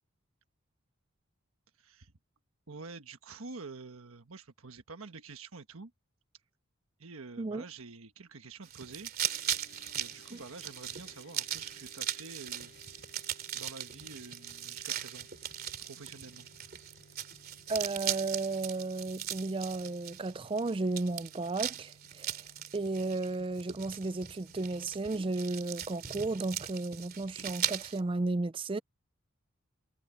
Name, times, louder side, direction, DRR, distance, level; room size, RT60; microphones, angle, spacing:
voice 1, 1.8-2.1 2.7-5.9 7.0-9.6 9.9-12.7 13.5-15.3 15.8-16.9, right 4 dB, 80° right, 1.3 m, -48 dB
sound 1, 8.6-28.0, right 10 dB, 45° right, 3.0 m, -39 dB
sound 2, 9.3-27.6, left 1 dB, 55° left, 2.5 m, -61 dB
voice 2, 17.7-22.4 22.7-28.8, right 3 dB, 25° right, 0.4 m, -34 dB
head